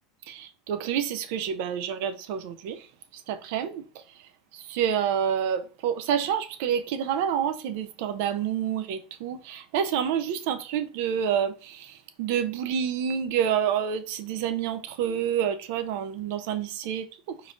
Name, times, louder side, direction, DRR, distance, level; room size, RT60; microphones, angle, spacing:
voice 1, 0.3-2.9 3.1-4.0 4.5-17.5, right 8 dB, 70° right, 0.7 m, -28 dB
4.8 x 3.9 x 2.6 m
hypercardioid pair, 95°, 0 cm